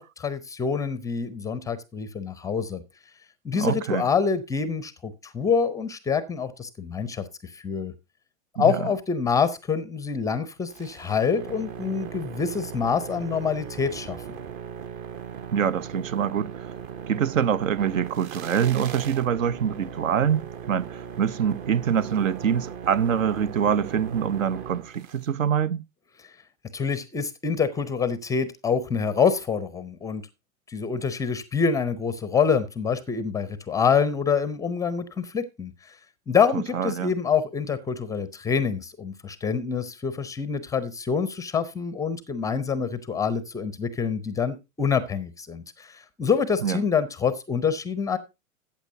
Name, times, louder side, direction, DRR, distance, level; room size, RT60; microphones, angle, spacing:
voice 1, 0.0-2.8 3.4-7.9 8.6-14.2 26.2-26.3 26.7-30.2 30.7-36.0 36.3-48.2, left 6 dB, 10° left, 0.5 m, -26 dB
voice 2, 3.5-4.1 8.6-8.8 15.5-16.7 17.1-25.9 36.7-37.1 46.6-46.8, right 8 dB, 70° right, 0.7 m, -25 dB
sound 1, 10.7-25.3, right 8 dB, 35° right, 0.8 m, -38 dB
14.0 x 8.4 x 2.7 m
figure-of-eight pair, 105°, 41 cm